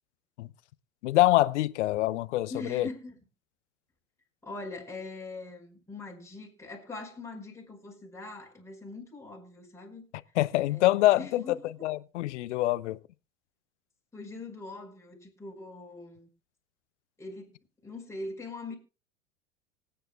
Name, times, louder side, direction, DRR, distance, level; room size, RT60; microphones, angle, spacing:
voice 1, 1.0-2.9 10.4-11.4 11.8-13.0, left 16 dB, 60° left, 0.8 m, -25 dB
voice 2, 2.5-3.2 4.4-10.0 10.7-11.6 14.1-16.3 17.2-17.6 17.8-18.7, left 3 dB, 5° left, 5.1 m, -42 dB
25.5 x 9.1 x 2.3 m
figure-of-eight pair, 80°, 39 cm